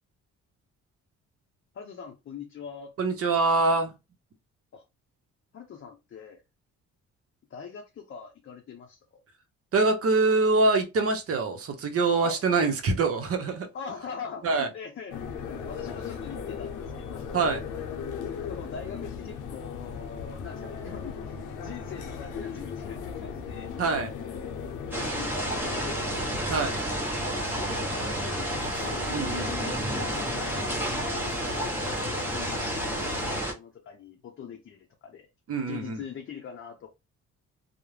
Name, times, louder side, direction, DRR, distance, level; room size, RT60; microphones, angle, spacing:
voice 1, 1.7-2.9 4.7-4.8 5.5-6.4 7.5-9.2 12.2-12.4 13.7-15.3 15.7-17.3 18.4-23.7 24.7-26.4 27.6-31.0 31.4-35.3 35.7-36.9, left 6 dB, 45° left, 0.6 m, -42 dB
voice 2, 3.0-3.9 9.7-13.7 14.4-14.7 17.3-17.6 23.8-24.1 26.5-26.7 29.1-29.7 35.5-36.0, right 3 dB, 50° right, 0.7 m, -24 dB
sound 1, 15.1-33.4, left 6 dB, 90° left, 0.6 m, -37 dB
sound 2, 24.9-33.5, right 1 dB, 5° right, 0.9 m, -31 dB
2.3 x 2.1 x 3.1 m
cardioid pair, 90°, 30 cm